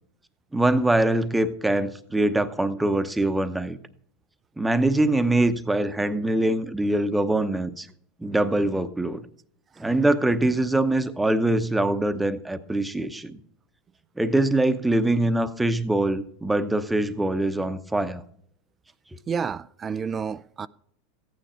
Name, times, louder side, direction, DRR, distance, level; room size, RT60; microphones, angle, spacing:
voice 1, 0.5-3.8 4.6-7.9 8.2-9.2 9.8-13.4 14.2-18.2, right 1 dB, 5° right, 0.9 m, -23 dB
voice 2, 19.3-20.7, right 6 dB, 25° right, 0.4 m, -30 dB
14.5 x 9.2 x 4.3 m
supercardioid pair, 125°, 0 cm